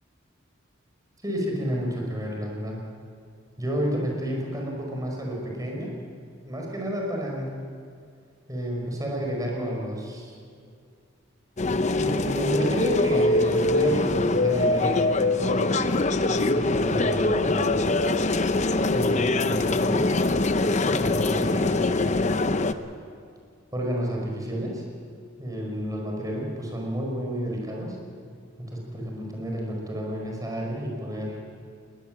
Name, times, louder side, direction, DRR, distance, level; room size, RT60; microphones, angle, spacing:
voice 1, 1.2-2.8 3.6-5.9 6.4-7.7 8.5-10.4 11.9-15.8 16.3-18.0 18.9-20.1 20.8-22.5 23.7-24.8 25.4-28.0 28.6-31.4, equal, 20° right, -1 dB, 5.1 m, -31 dB
sound 1, 11.6-22.7, left 2 dB, 35° left, 0.8 m, -23 dB
sound 2, 12.0-12.5 13.4-13.9 14.7-15.3 15.8-16.2 17.0-17.6 18.5-19.0 19.5-20.2 21.2-21.8, equal, ahead, 2.0 m, -44 dB
20.5 x 20.0 x 7.6 m, 2.3 s
head